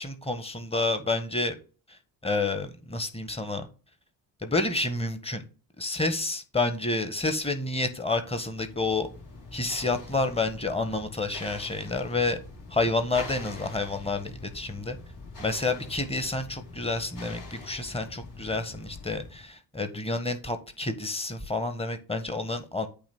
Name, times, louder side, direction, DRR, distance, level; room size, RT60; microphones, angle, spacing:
voice 1, 0.0-1.6 2.2-3.7 4.4-5.4 5.8-9.1 9.5-12.4 12.7-15.0 15.4-22.9, left 2 dB, 15° left, 8 dB, 1.5 m, -29 dB
sound 1, 8.0-19.5, left 3 dB, 65° left, 3.2 m, -44 dB
8.7 x 3.0 x 6.1 m, 0.36 s
hypercardioid pair, 50°, 46 cm